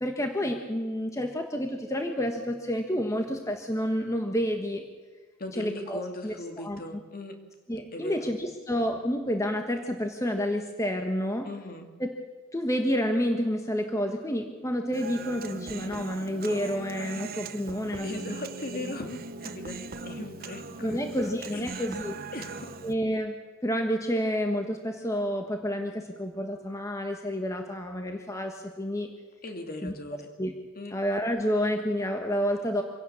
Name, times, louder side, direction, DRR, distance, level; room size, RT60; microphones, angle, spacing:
voice 1, 0.0-4.8 5.6-6.8 7.7-11.5 12.0-12.1 12.5-18.3 18.9-19.0 20.8-22.2 22.8-23.4 23.6-29.1 29.8-29.9 30.4-30.5 30.9-32.8, equal, 15° left, 4 dB, 1.4 m, -29 dB
voice 2, 5.4-7.4 7.9-8.3 11.4-11.9 18.0-19.8 20.0-21.0 21.5-21.8 22.3-22.8 29.4-30.3 30.8-31.0, left 2 dB, 45° left, 5 dB, 2.5 m, -38 dB
Human voice, 14.9-22.9, right 3 dB, 45° right, 1.0 m, -39 dB
26.0 x 17.5 x 7.1 m, 1.5 s
head